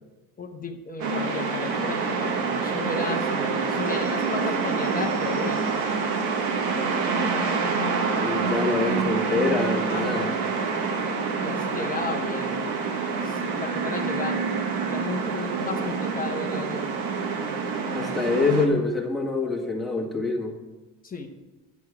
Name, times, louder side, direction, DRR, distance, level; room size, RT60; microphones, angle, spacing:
voice 1, 0.4-5.7 9.9-10.4 11.4-12.6 13.2-14.5 14.9-16.9 21.0-21.3, left 3 dB, 25° left, 3 dB, 1.0 m, -34 dB
sound 1, 1.0-18.7, right 4 dB, 75° right, 1.5 m, -27 dB
voice 2, 8.2-10.3 17.9-20.6, left 3 dB, ahead, -3 dB, 1.8 m, -25 dB
10.5 x 8.4 x 4.9 m, 1.1 s
cardioid pair, 115°, 37 cm